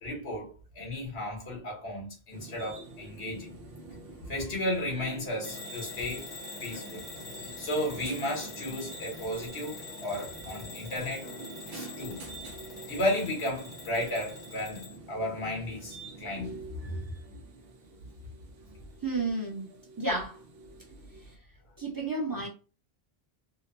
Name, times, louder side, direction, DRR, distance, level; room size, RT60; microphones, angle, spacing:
voice 1, 0.0-3.5 4.3-6.3 6.6-7.1 7.4-11.3 11.7-12.2 12.9-17.0, left 1 dB, 70° left, 1.2 m, -34 dB
sound 1, 2.3-21.4, right 3 dB, 65° right, 0.8 m, -47 dB
Bell / Alarm, 5.4-15.0, left 3 dB, 50° left, 0.9 m, -45 dB
voice 2, 19.0-19.7 20.0-20.4 21.8-22.5, right 2 dB, 25° right, 0.7 m, -31 dB
2.8 x 2.1 x 2.5 m
omnidirectional pair, 1.1 m